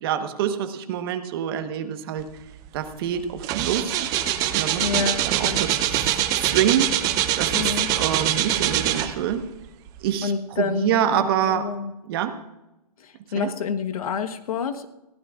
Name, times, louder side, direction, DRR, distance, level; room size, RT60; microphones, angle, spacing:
voice 1, 0.0-2.4 2.7-4.0 4.5-6.9 7.4-9.5 10.0-11.7 12.0-12.4 13.3-13.5, right 9 dB, 35° right, 8 dB, 1.2 m, -26 dB
failed car start, 2.7-2.9 3.2-9.4 10.0-10.1, right 11 dB, 20° right, 0.6 m, -24 dB
voice 2, 4.8-5.6 7.5-7.9 10.2-11.9 13.0-15.0, left 6 dB, 65° left, 7 dB, 1.3 m, -28 dB
21.5 x 15.5 x 2.5 m, 0.98 s
hypercardioid pair, 155°, 20 cm